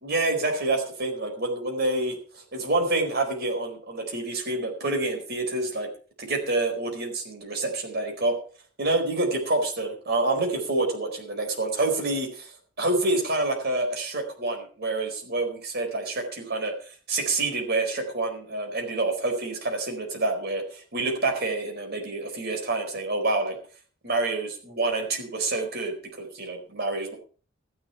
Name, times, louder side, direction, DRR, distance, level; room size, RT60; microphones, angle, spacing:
voice 1, 0.0-5.9 6.2-8.4 8.8-12.5 12.8-16.7 17.1-23.6 24.0-27.2, right 2 dB, 50° right, 3 dB, 4.4 m, -27 dB
14.0 x 10.5 x 5.8 m, 0.39 s
head